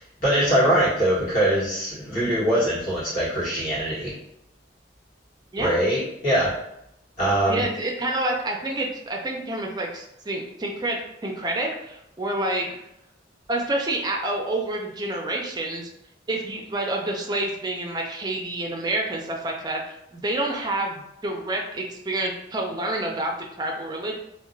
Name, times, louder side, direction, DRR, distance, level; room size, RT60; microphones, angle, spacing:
voice 1, 0.0-4.1 5.6-6.6 7.2-7.6, right 1 dB, 45° left, -10 dB, 1.5 m, -22 dB
voice 2, 7.5-12.7 13.5-15.9 16.3-23.3 23.6-24.2, right 2 dB, 20° right, 1 dB, 0.4 m, -28 dB
2.8 x 2.1 x 2.6 m, 0.80 s
head